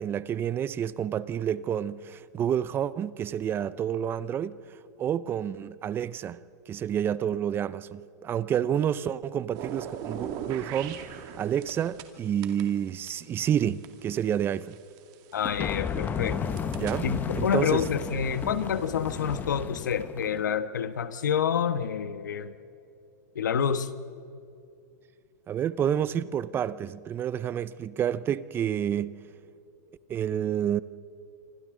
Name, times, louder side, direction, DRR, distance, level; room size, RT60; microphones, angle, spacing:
voice 1, 0.0-4.6 5.0-14.8 16.7-17.1 17.3-17.8 25.5-29.2 30.1-30.8, right 9 dB, 25° right, 0.6 m, -29 dB
sound 1, 9.5-12.1 12.4-15.3 16.0-19.4, right 8 dB, 40° right, 2.2 m, -41 dB
voice 2, 15.3-16.5 17.0-22.5 23.3-23.9, left 8 dB, 90° left, 1.2 m, -28 dB
sound 2, 15.4-20.4, left 6 dB, 20° left, 1.0 m, -34 dB
27.0 x 25.5 x 3.8 m
hypercardioid pair, 135°, 10 cm